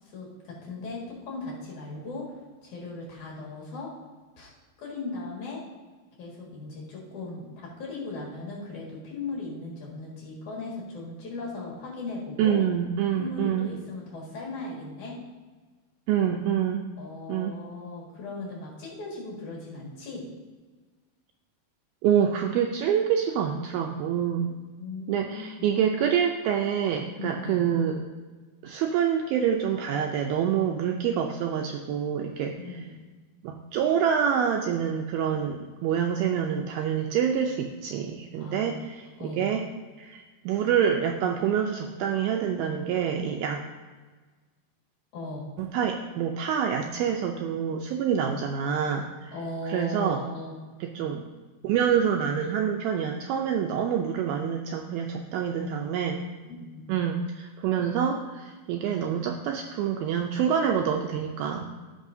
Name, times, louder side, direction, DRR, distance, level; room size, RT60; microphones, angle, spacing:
voice 1, 0.0-3.9 4.4-4.5 4.8-5.6 6.2-12.6 13.2-15.2 17.0-20.2 24.4-24.5 24.8-25.7 27.2-27.7 32.5-32.9 38.3-38.8 39.2-39.4 45.1-45.5 49.3-50.5 56.5-56.9, left 2 dB, 55° left, -4 dB, 2.9 m, -38 dB
voice 2, 12.4-13.7 16.1-16.9 17.3-17.6 22.0-24.5 25.1-28.0 28.6-32.5 33.4-39.6 40.0-43.6 45.6-49.3 49.6-50.2 50.8-51.2 51.6-56.2 56.9-61.7, right 8 dB, 85° right, 3 dB, 2.2 m, -26 dB
15.0 x 5.5 x 2.6 m, 1.4 s
omnidirectional pair, 4.8 m